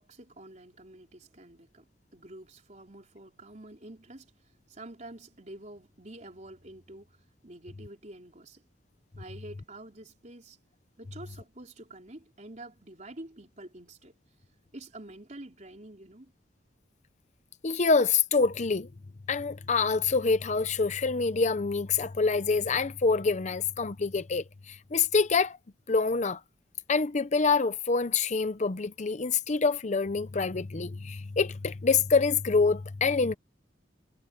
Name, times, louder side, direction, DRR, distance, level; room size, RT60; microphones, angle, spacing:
voice 1, 0.0-8.6 9.2-10.6 11.0-14.1 14.7-16.3, right 1 dB, 40° right, 4.0 m, -48 dB
voice 2, 17.6-18.9 19.3-25.6 25.9-26.4 26.9-33.4, left 4 dB, 40° left, 0.6 m, -26 dB
head